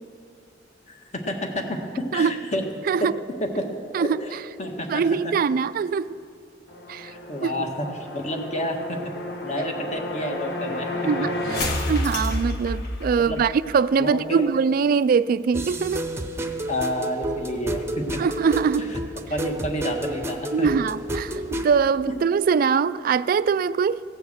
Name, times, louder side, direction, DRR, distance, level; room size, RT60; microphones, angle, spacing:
voice 1, 0.9-2.6 3.4-3.7 4.0-5.3 7.0-9.0 9.4-10.9 13.2-13.4 14.0-14.4 16.7-18.2 18.8-19.0 19.3-20.7, equal, 40° left, 1.4 m, -30 dB
voice 2, 4.9-6.2 6.9-7.1 7.4-7.5 11.0-16.0 18.2-18.9 20.5-24.0, right 6 dB, 50° right, 0.3 m, -22 dB
sound 1, 6.7-13.5, left 1 dB, 65° left, 1.5 m, -30 dB
sound 2, 15.5-21.7, equal, 15° right, 0.7 m, -31 dB
16.0 x 7.1 x 7.4 m
head